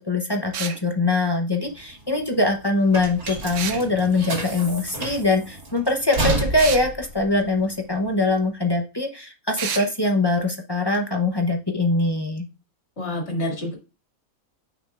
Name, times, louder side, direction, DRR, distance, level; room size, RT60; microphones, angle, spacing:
voice 1, 0.0-12.5, left 2 dB, 25° left, 3 dB, 0.7 m, -23 dB
sound 1, 0.5-0.8 3.5-3.8 6.6-6.9 9.6-9.9, right 7 dB, 65° right, 1.1 m, -29 dB
sound 2, 1.7-8.4, right 1 dB, 85° right, 3.0 m, -30 dB
voice 2, 13.0-13.7, left 1 dB, 50° left, 0 dB, 2.8 m, -27 dB
8.6 x 6.0 x 2.4 m, 0.30 s
omnidirectional pair, 1.5 m